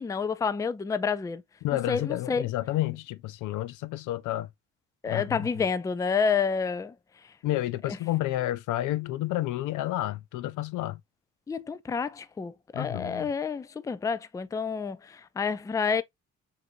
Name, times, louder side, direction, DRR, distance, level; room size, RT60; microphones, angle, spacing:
voice 1, 0.0-1.4 1.9-2.5 5.0-6.9 7.9-8.0 11.5-16.0, left 5 dB, 10° left, 0.3 m, -29 dB
voice 2, 1.6-4.5 5.1-5.5 7.4-11.0 12.7-13.3, left 15 dB, 90° left, 0.5 m, -30 dB
6.4 x 2.6 x 2.6 m
cardioid pair, 90°, 30 cm